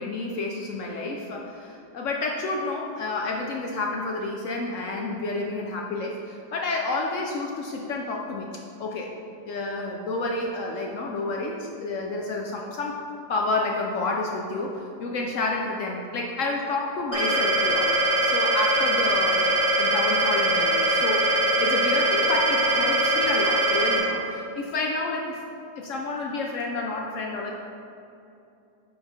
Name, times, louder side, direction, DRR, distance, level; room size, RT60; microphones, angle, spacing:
voice 1, 0.0-8.5 8.8-9.1 9.5-13.0 13.3-21.2 21.6-25.4 25.8-27.6, left 2 dB, 75° left, 0 dB, 0.7 m, -30 dB
sound 1, 17.1-24.0, right 1 dB, 45° right, 1.4 m, -22 dB
5.8 x 4.1 x 5.0 m, 2.7 s
omnidirectional pair, 1.9 m